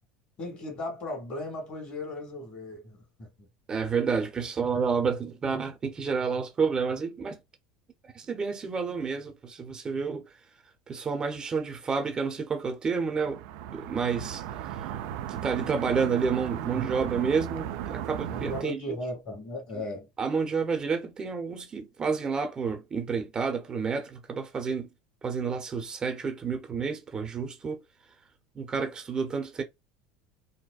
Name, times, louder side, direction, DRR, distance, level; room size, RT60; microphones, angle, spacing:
voice 1, 0.4-3.5 18.3-20.1, left 1 dB, 45° left, 2.1 m, -37 dB
voice 2, 3.7-7.4 8.1-10.3 10.9-13.4 13.7-14.4 14.7-14.9 15.3-18.9 20.2-24.9 25.2-27.8 28.5-29.6, right 5 dB, 30° right, 0.8 m, -30 dB
sound 1, 13.0-18.6, right 11 dB, 70° right, 0.5 m, -36 dB
4.1 x 2.1 x 2.4 m
hypercardioid pair, 90°, 3 cm